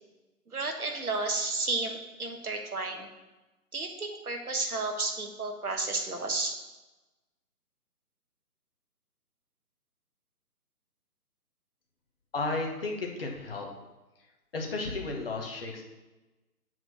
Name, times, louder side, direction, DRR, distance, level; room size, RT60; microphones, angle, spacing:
voice 1, 0.5-3.1 3.7-6.6, right 3 dB, 70° right, 4 dB, 1.4 m, -32 dB
voice 2, 12.3-13.7 14.5-15.8, left 3 dB, 40° left, 1 dB, 1.3 m, -33 dB
8.1 x 4.7 x 5.7 m, 1.1 s
figure-of-eight pair, 145°, 46 cm